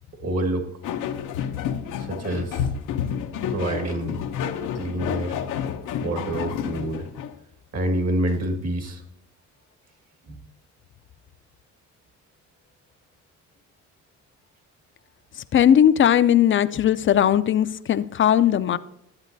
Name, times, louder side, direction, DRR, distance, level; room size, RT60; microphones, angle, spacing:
voice 1, 0.2-0.7 2.0-2.7 3.5-4.2 4.7-5.4 6.0-7.1 7.7-9.0 10.3-10.4, right 1 dB, 55° right, 5 dB, 1.9 m, -27 dB
sound 1, 0.8-7.4, left 8 dB, 85° left, 0.8 m, -29 dB
voice 2, 15.5-18.8, left 10 dB, 40° left, 14 dB, 0.5 m, -18 dB
11.5 x 8.1 x 2.7 m, 0.80 s
cardioid pair, 90°, 30 cm